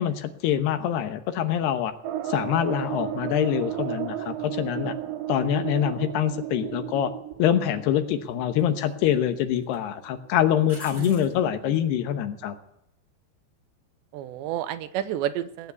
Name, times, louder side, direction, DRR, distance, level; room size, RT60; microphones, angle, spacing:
voice 1, 0.0-1.9 2.3-4.9 5.3-7.1 7.4-12.6, left 10 dB, 75° left, 9 dB, 3.0 m, -25 dB
sound 1, 2.0-10.5 10.9-11.0 11.2-11.3, right 12 dB, 70° right, 2.4 m, -34 dB
sound 2, 7.3-7.5 8.6-9.2 9.6-9.8 10.6-11.4 14.5-14.8, right 2 dB, 25° right, 1.5 m, -46 dB
voice 2, 11.0-11.8 14.1-15.7, right 11 dB, 85° right, 13 dB, 3.1 m, -31 dB
18.0 x 9.3 x 8.3 m, 0.78 s
omnidirectional pair, 5.1 m